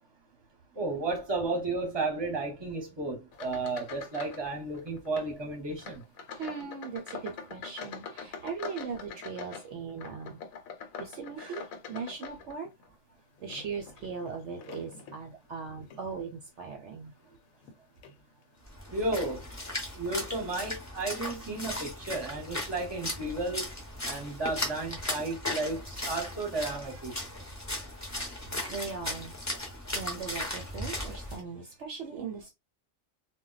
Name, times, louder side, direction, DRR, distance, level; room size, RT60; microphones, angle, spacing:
voice 1, 0.7-6.0 11.4-11.6 18.9-19.4 19.9-23.7 24.0-27.2, right 2 dB, 25° right, 0.8 m, -33 dB
sound 1, 3.3-4.5 4.7-5.3 5.8-12.9 13.4-15.2 15.8-16.1 16.6-16.7 17.6-17.7 18.0-18.2, left 6 dB, 90° left, 1.0 m, -44 dB
voice 2, 6.3-10.4 11.0-12.7 13.4-17.1 28.7-29.3 29.6-32.5, right 5 dB, 65° right, 0.8 m, -39 dB
Splash splatter, 18.6-31.4, left 1 dB, 15° left, 0.6 m, -37 dB
2.2 x 2.1 x 3.8 m
omnidirectional pair, 1.4 m